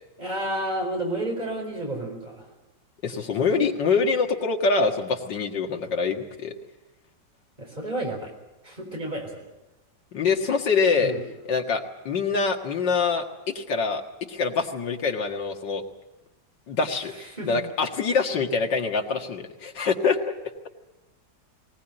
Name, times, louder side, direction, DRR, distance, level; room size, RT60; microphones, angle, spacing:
voice 1, 0.2-2.5 3.1-3.5 7.6-8.3 8.6-9.4 11.0-11.2 17.1-17.6, right 1 dB, 25° right, 1 dB, 4.6 m, -31 dB
voice 2, 3.0-6.5 10.1-11.1 11.5-14.0 14.3-15.8 16.7-20.3, left 4 dB, 80° left, 3 dB, 2.4 m, -25 dB
20.0 x 19.0 x 9.0 m, 1.0 s
omnidirectional pair, 1.9 m